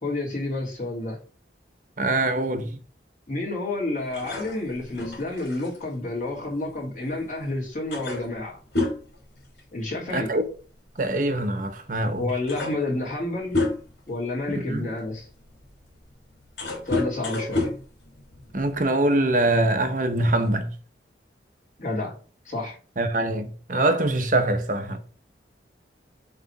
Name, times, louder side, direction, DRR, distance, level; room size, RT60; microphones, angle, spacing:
voice 1, 0.0-1.2 3.3-8.6 9.7-10.3 12.2-13.6 14.1-15.3 16.8-17.8 21.8-22.1 22.4-22.8, left 2 dB, 45° left, 3.2 m, -29 dB
voice 2, 2.0-2.7 10.1-10.4 11.0-12.3 14.5-14.9 18.5-20.7 23.0-25.0, right 2 dB, 45° right, 0.8 m, -23 dB
sound 1, 4.1-7.2 7.5-7.6 7.9-10.1 10.4-10.6 11.6-11.7 12.2-14.1 14.7-18.8, left 2 dB, 70° left, 2.7 m, -31 dB
7.7 x 3.3 x 5.9 m
head